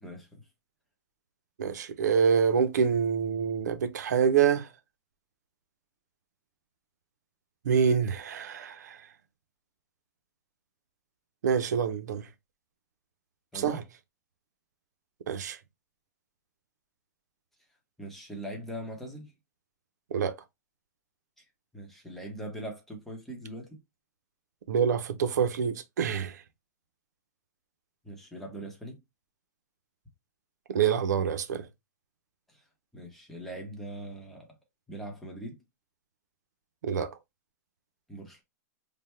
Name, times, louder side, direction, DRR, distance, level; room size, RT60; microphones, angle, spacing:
voice 1, 0.0-0.4 13.5-13.8 18.0-19.3 21.4-21.5 21.7-23.8 28.0-29.0 32.5-32.6 32.9-34.5 34.9-35.6 38.1-38.4, right 1 dB, ahead, 0.8 m, -41 dB
voice 2, 1.6-4.7 7.6-9.0 11.4-12.3 13.5-13.8 15.3-15.6 20.1-20.4 24.7-26.4 30.7-31.7 36.8-37.2, right 7 dB, 85° right, 0.6 m, -26 dB
3.4 x 2.1 x 4.2 m
supercardioid pair, 160°, 9 cm